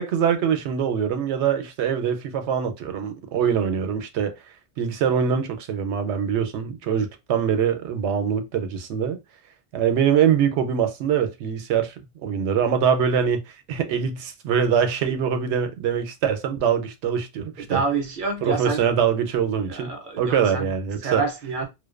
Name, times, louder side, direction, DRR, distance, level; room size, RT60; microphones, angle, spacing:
voice 1, 0.0-4.4 4.8-9.2 9.7-11.9 12.2-13.4 13.7-17.8 18.4-21.2, right 7 dB, 80° right, 0.9 m, -23 dB
voice 2, 17.7-18.8 19.7-20.7 21.0-21.6, right 4 dB, 55° right, 0.7 m, -27 dB
2.5 x 2.1 x 2.3 m
omnidirectional pair, 1.1 m